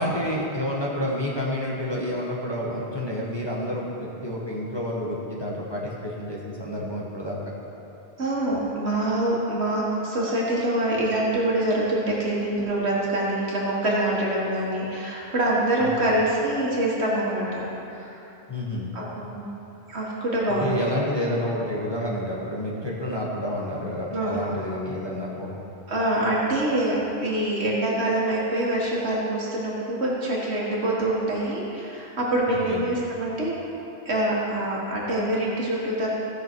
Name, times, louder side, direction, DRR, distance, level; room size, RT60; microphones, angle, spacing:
voice 1, 0.0-7.5 15.8-15.9 18.5-18.9 20.5-25.5 32.5-32.8, left 1 dB, 25° left, -5 dB, 1.2 m, -29 dB
voice 2, 8.2-17.7 17.9-18.2 18.9-19.5 19.9-20.8 24.1-24.6 25.9-33.6 34.1-36.1, right 1 dB, 80° right, -5 dB, 1.9 m, -25 dB
16.0 x 6.3 x 4.5 m, 2.9 s
omnidirectional pair, 1.1 m